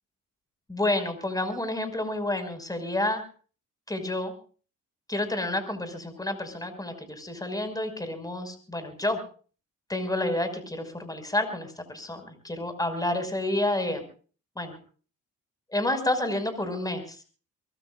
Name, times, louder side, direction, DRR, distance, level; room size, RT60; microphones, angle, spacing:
voice 1, 0.7-3.2 3.9-4.3 5.1-9.2 9.9-14.0 14.6-14.8 15.7-17.2, left 1 dB, 10° left, 8 dB, 5.7 m, -29 dB
24.0 x 21.5 x 2.5 m, 0.39 s
cardioid pair, 90°, 30 cm